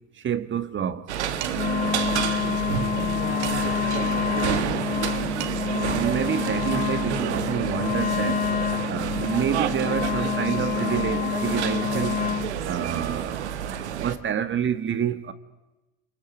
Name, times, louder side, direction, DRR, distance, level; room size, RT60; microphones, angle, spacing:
voice 1, 0.1-1.2 1.5-1.8 5.6-8.5 8.8-12.3 12.6-13.5 14.0-15.3, right 9 dB, 35° right, 1.9 m, -28 dB
sound 1, 1.1-14.2, right 9 dB, 85° right, 1.9 m, -29 dB
Dishes pots and pans, 1.4-1.8 3.4-3.9 5.1-5.2 5.4-5.9, right 11 dB, 60° right, 2.9 m, -38 dB
Wind instrument woodwind instrument, 1.5-12.5, left 9 dB, 25° left, 1.7 m, -28 dB
voice 2, 3.0-5.7, left 5 dB, 45° left, 3.4 m, -40 dB
28.5 x 21.0 x 8.2 m
hypercardioid pair, 85°, 33 cm